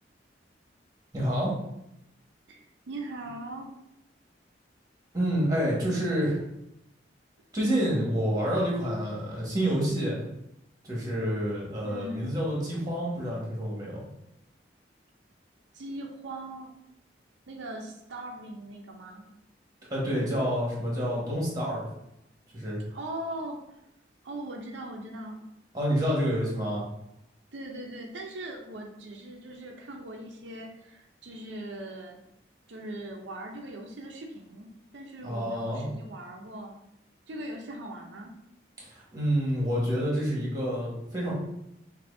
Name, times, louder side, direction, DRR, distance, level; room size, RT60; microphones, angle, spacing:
voice 1, 1.1-1.5 5.1-6.4 7.5-10.2 10.8-14.0 19.9-21.8 22.5-22.8 25.7-26.8 35.2-35.9 38.8-41.3, equal, 20° right, -4 dB, 1.4 m, -28 dB
voice 2, 2.5-3.7 11.8-12.4 15.7-16.8 17.5-19.2 22.9-23.6 24.2-25.4 27.5-32.2 32.7-36.8 37.3-38.3, right 1 dB, 80° right, 1 dB, 0.6 m, -40 dB
6.0 x 2.7 x 2.6 m, 0.82 s
head